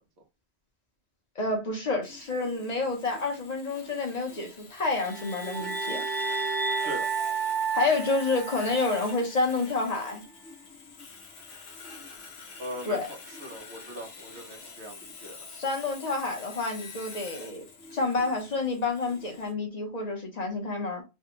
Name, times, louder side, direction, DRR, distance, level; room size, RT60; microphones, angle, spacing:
voice 1, 1.4-6.0 7.7-10.2 12.8-13.1 15.5-17.6 17.9-21.0, left 3 dB, 40° left, 1.0 m, -29 dB
Sawing, 2.0-19.5, left 4 dB, 70° left, 1.0 m, -46 dB
sound 1, 4.9-9.2, right 5 dB, 30° right, 0.5 m, -31 dB
voice 2, 12.6-15.4, equal, 75° right, 1.2 m, -40 dB
3.3 x 2.2 x 2.9 m
omnidirectional pair, 1.1 m